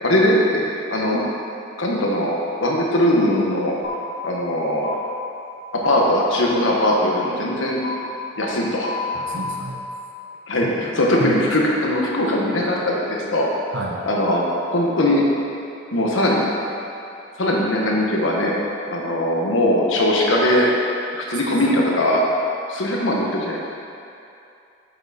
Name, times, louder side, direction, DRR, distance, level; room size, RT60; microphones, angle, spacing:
voice 1, 0.0-1.2 1.8-2.3 2.6-3.7 4.2-4.9 5.8-7.8 8.4-8.9 10.5-13.5 14.0-14.4 14.7-15.2 15.9-16.5 17.4-18.5 18.9-20.7 21.1-22.2 22.7-23.6, left 1 dB, 85° left, -2 dB, 1.3 m, -20 dB
sound 1, 3.8-4.0 4.8-5.0 5.8-6.0 6.8-7.0 7.8-8.0 8.8-9.4, left 4 dB, 60° left, 1.6 m, -28 dB
voice 2, 9.1-9.8 11.2-11.3 13.7-14.0 21.4-21.5, right 2 dB, 75° right, -1 dB, 1.1 m, -30 dB
7.8 x 6.8 x 4.2 m, 2.7 s
head